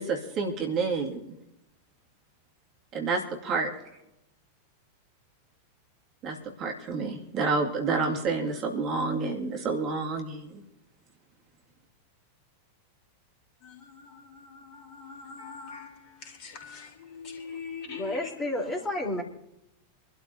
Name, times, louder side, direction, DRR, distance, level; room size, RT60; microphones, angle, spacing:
voice 1, 0.0-1.3 2.9-3.7 6.2-10.6, right 4 dB, 35° right, 2.2 m, -29 dB
voice 2, 13.6-15.9 16.2-18.2, left 5 dB, 40° left, 3.8 m, -43 dB
voice 3, 17.8-19.2, left 1 dB, 15° left, 3.8 m, -31 dB
26.5 x 12.5 x 2.8 m
figure-of-eight pair, 90°, 0 cm